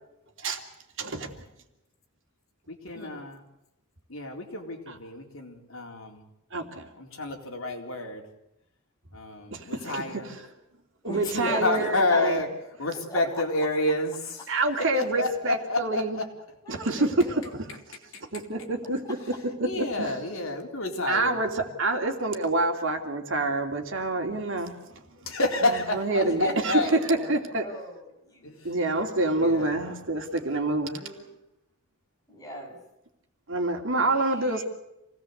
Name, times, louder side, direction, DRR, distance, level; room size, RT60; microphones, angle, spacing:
voice 1, 1.0-1.3 4.9-5.0 6.5-6.9 9.5-10.4 11.0-12.4 14.5-16.2 16.7-17.7 18.3-19.2 19.6-20.1 21.1-24.7 25.9-27.6 28.6-31.0 33.5-34.6, right 2 dB, 65° right, 4 dB, 3.0 m, -27 dB
voice 2, 2.7-3.4 4.1-6.2 7.0-8.3 9.1-10.3 11.3-12.5 12.8-14.4 14.9-16.3 19.6-21.4 25.3-27.3 28.4-28.7 29.4-29.8 34.6-34.7, left 2 dB, 70° left, 2 dB, 4.1 m, -29 dB
voice 3, 11.0-12.5 13.1-13.4 16.6-17.3 18.6-18.9 26.2-28.5 30.8-31.2 32.3-32.8 34.1-34.2, equal, 15° left, -1 dB, 7.9 m, -39 dB
27.5 x 18.5 x 8.1 m, 0.90 s
head